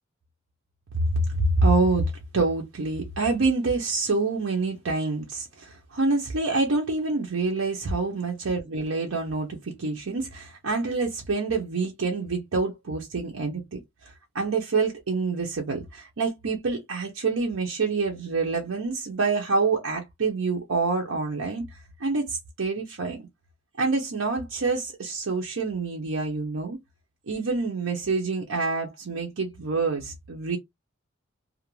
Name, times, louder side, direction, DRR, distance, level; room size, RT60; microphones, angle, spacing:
voice 1, 1.1-21.7 22.0-23.3 23.8-26.8 27.3-30.6, right 3 dB, 80° right, 0.6 m, -27 dB
2.4 x 2.1 x 3.0 m
head